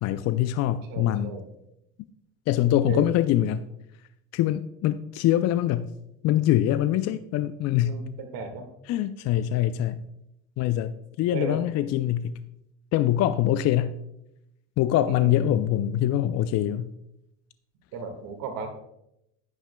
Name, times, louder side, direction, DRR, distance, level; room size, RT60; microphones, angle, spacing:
voice 1, 0.0-1.4 2.5-3.7 4.3-5.9 6.2-8.0 8.9-10.0 10.6-12.4 12.9-14.0 14.8-16.9, left 12 dB, 45° left, 13 dB, 0.4 m, -24 dB
voice 2, 0.9-1.5 2.8-3.1 7.8-8.7 11.3-11.6 15.1-15.4 17.9-18.7, right 5 dB, 65° right, 5 dB, 1.8 m, -35 dB
10.0 x 8.8 x 2.2 m, 0.82 s
hypercardioid pair, 80°, 37 cm